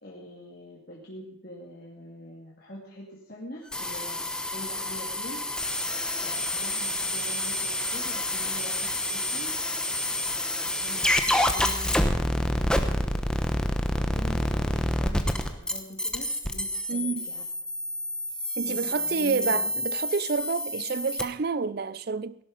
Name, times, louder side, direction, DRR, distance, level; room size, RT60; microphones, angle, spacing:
voice 1, 0.0-5.4 6.2-9.6 10.8-13.2 13.7-17.4 18.6-19.7, equal, 50° left, 2.3 m, -44 dB
sound 1, 3.7-21.2, left 1 dB, 5° left, 0.9 m, -28 dB
voice 2, 16.9-17.3 18.6-22.4, right 4 dB, 50° right, 0.5 m, -29 dB
17.0 x 11.5 x 5.2 m
head